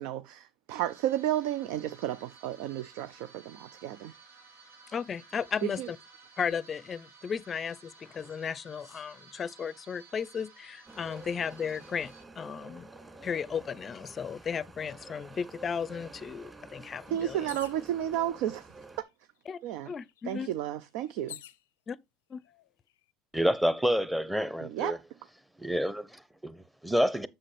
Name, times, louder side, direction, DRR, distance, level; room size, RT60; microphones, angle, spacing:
voice 1, 0.0-4.1 5.6-5.9 17.1-18.7 19.6-19.9 20.3-21.4 24.6-25.0, right 12 dB, 70° right, 0.5 m, -32 dB
sound 1, 0.7-12.2, right 4 dB, 85° right, 1.5 m, -55 dB
voice 2, 4.9-6.0 6.4-12.9 13.2-17.5 19.5-19.6 19.9-20.5 21.9-22.0 22.3-22.4, left 7 dB, 35° left, 0.5 m, -35 dB
sound 2, 10.9-19.0, right 3 dB, 20° right, 2.3 m, -49 dB
sound 3, 17.5-17.9 18.8-18.9 19.2-21.6 22.4-22.9, left 12 dB, 90° left, 0.5 m, -48 dB
voice 3, 23.3-25.0 25.6-27.3, equal, 5° right, 0.8 m, -28 dB
7.4 x 6.3 x 3.3 m
hypercardioid pair, 80°, 0 cm